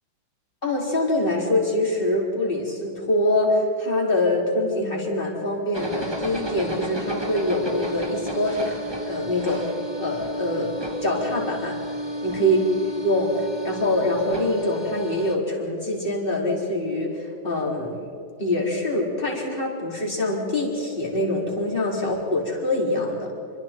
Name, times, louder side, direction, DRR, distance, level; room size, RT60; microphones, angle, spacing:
voice 1, 0.6-8.8 9.0-9.6 10.0-10.7 11.0-11.8 12.2-12.6 13.0-18.0 18.4-23.3, left 1 dB, 25° left, -2 dB, 4.4 m, -24 dB
sound 1, 5.7-15.3, right 1 dB, 15° right, 1.4 m, -33 dB
28.5 x 24.5 x 4.5 m, 2.4 s
omnidirectional pair, 2.0 m